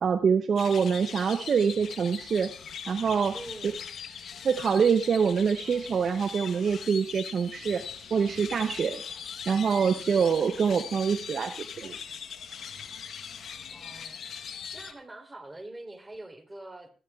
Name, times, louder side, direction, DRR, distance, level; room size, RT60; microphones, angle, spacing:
voice 1, 0.0-2.5 2.9-3.3 4.4-7.9 8.1-9.0 9.5-12.0, right 6 dB, 60° right, 10 dB, 0.6 m, -25 dB
sound 1, 0.6-14.9, left 7 dB, 70° left, 1.0 m, -41 dB
voice 2, 3.3-3.8 13.7-14.2 14.7-16.9, right 2 dB, 20° right, 5 dB, 3.3 m, -44 dB
20.5 x 13.0 x 2.3 m, 0.39 s
supercardioid pair, 50°, 0 cm